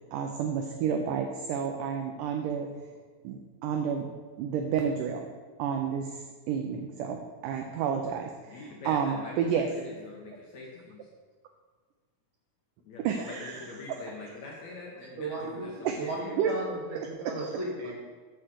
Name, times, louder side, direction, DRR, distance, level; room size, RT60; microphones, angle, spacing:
voice 1, 0.0-2.7 3.2-4.1 4.4-5.3 5.6-9.7 13.0-13.7 14.1-14.2 15.9-16.0 16.4-16.5, right 7 dB, 85° right, 4 dB, 1.8 m, -30 dB
voice 2, 8.5-9.3 9.7-11.0 12.9-16.1, left 3 dB, 70° left, -2 dB, 1.9 m, -44 dB
voice 3, 15.0-15.7 16.0-17.9, right 2 dB, 60° right, -2 dB, 2.5 m, -36 dB
6.5 x 5.6 x 6.3 m, 1.4 s
omnidirectional pair, 4.2 m